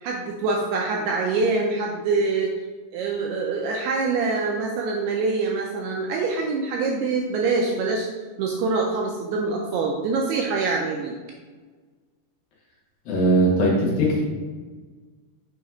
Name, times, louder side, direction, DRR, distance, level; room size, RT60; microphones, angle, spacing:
voice 1, 0.0-2.5 2.9-8.1 8.4-11.2, right 4 dB, 80° right, 0 dB, 2.4 m, -25 dB
voice 2, 13.1-14.2, right 1 dB, 65° left, -3 dB, 2.7 m, -20 dB
6.5 x 4.0 x 4.8 m, 1.4 s
omnidirectional pair, 5.1 m